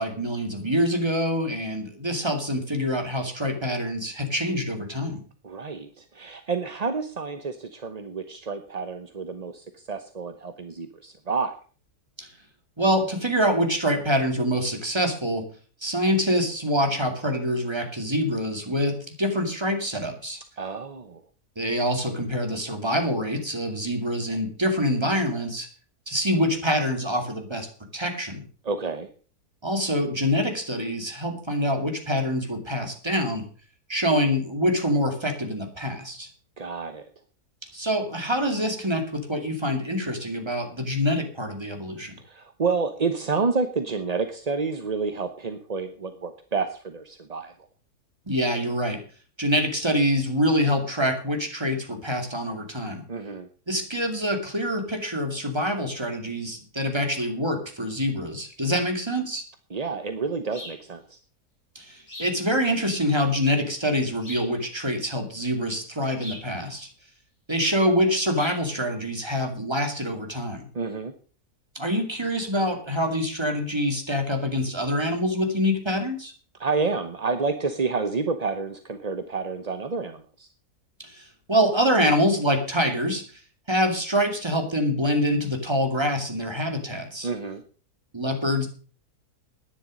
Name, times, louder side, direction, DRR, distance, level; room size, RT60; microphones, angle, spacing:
voice 1, 0.0-5.2 12.2-12.3 12.8-15.5 15.8-20.4 21.6-25.7 26.1-27.7 27.9-28.4 29.6-33.5 33.9-36.3 37.7-42.1 48.3-49.0 49.4-53.0 53.7-59.4 61.7-66.9 67.5-70.7 71.7-76.3 81.0-83.2 83.7-87.3 88.1-88.7, equal, 15° right, 4 dB, 2.5 m, -25 dB
voice 2, 5.4-11.5 20.6-21.2 28.6-29.1 36.6-37.0 42.2-47.5 53.1-53.5 59.7-61.2 70.7-71.1 76.6-80.5 87.2-87.6, right 4 dB, 30° right, 8 dB, 0.8 m, -29 dB
sound 1, 60.5-60.8 62.1-62.4 64.2-64.6 66.2-66.5 68.3-68.6, equal, 50° left, 5.4 m, -40 dB
11.5 x 10.0 x 6.4 m, 0.41 s
omnidirectional pair, 1.7 m